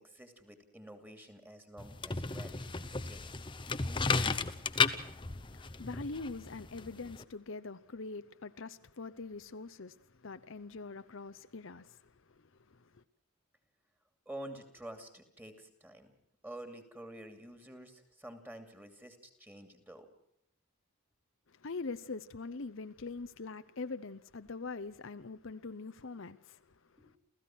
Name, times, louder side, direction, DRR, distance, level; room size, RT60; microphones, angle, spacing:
voice 1, 0.0-3.4 3.8-4.2 14.3-16.1 16.4-20.1 27.0-27.1, right 1 dB, 10° right, 2.6 m, -49 dB
sound 1, 1.8-7.2, left 4 dB, 20° left, 0.8 m, -34 dB
voice 2, 5.2-13.0 21.5-27.2, left 3 dB, 60° left, 0.8 m, -44 dB
29.0 x 15.5 x 6.1 m
head